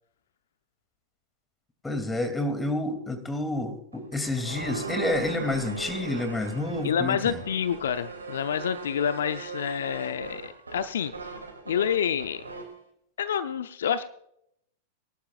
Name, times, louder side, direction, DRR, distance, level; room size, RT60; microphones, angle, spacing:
voice 1, 1.8-7.4, left 2 dB, 10° left, 7 dB, 2.8 m, -29 dB
sound 1, 3.9-12.8, right 4 dB, 90° right, 2.7 m, -39 dB
voice 2, 6.8-11.3 11.7-12.4 13.2-14.1, left 8 dB, 70° left, 12 dB, 0.7 m, -28 dB
23.5 x 11.5 x 2.5 m, 0.73 s
figure-of-eight pair, 95°, 0 cm